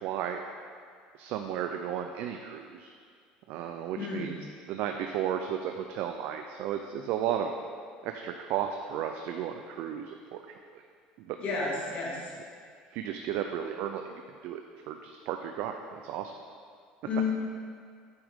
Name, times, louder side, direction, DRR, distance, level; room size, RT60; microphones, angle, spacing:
voice 1, 0.0-0.4 1.2-2.9 3.5-7.5 8.0-10.4 10.7-10.8 11.3-11.4 12.9-14.1 14.4-14.6 14.9-16.3, right 9 dB, 70° right, 5 dB, 0.5 m, -34 dB
voice 2, 3.9-4.3 11.4-12.3 17.0-17.3, left 4 dB, 45° left, -3 dB, 2.3 m, -31 dB
9.0 x 8.0 x 3.7 m, 2.1 s
cardioid pair, 120°, 3 cm